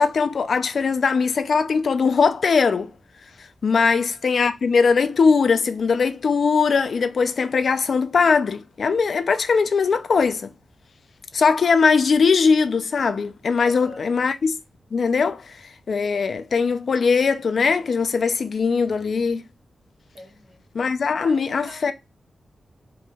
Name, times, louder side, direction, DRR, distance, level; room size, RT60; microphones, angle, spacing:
voice 1, 0.0-2.9 3.6-10.5 11.3-14.5 14.9-15.4 15.9-19.4 20.7-21.9, left 5 dB, 55° left, 0.5 m, -20 dB
voice 2, 13.6-14.1 20.1-20.6 21.1-21.9, equal, 65° right, 2.8 m, -43 dB
4.7 x 2.9 x 3.4 m
wide cardioid pair, 170°, 0 cm